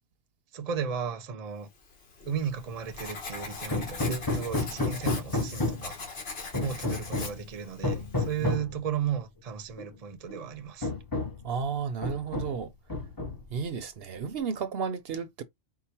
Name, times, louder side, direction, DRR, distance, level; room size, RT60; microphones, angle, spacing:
voice 1, 0.5-1.7 2.3-6.0 6.6-10.9, right 7 dB, 40° right, 0.7 m, -34 dB
Writing, 1.8-8.6, left 4 dB, 65° left, 1.4 m, -42 dB
Hammer, 3.7-6.0 6.5-7.4 7.8-8.7 9.8-9.9 10.3-10.4 10.8-11.5 12.0-12.6 12.9-13.6, left 2 dB, 20° left, 0.8 m, -31 dB
voice 2, 11.4-12.7 13.5-15.4, right 6 dB, 65° right, 0.8 m, -33 dB
4.7 x 2.1 x 4.2 m
omnidirectional pair, 1.1 m